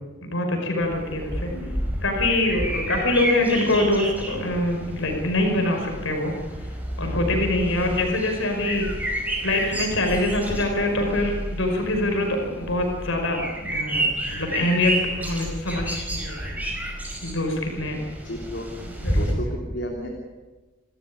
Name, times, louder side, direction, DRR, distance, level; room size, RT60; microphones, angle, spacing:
voice 1, 0.2-1.5 2.0-6.7 7.0-9.1 9.4-14.1 14.4-16.4 17.2-18.0 18.8-19.5, left 1 dB, 85° left, 2 dB, 5.5 m, -24 dB
sound 1, 0.8-19.3, right 1 dB, 10° right, 5.0 m, -30 dB
voice 2, 1.5-1.9 18.2-18.7 19.0-20.1, equal, 60° left, 1 dB, 3.4 m, -33 dB
29.0 x 14.0 x 10.0 m, 1.2 s
head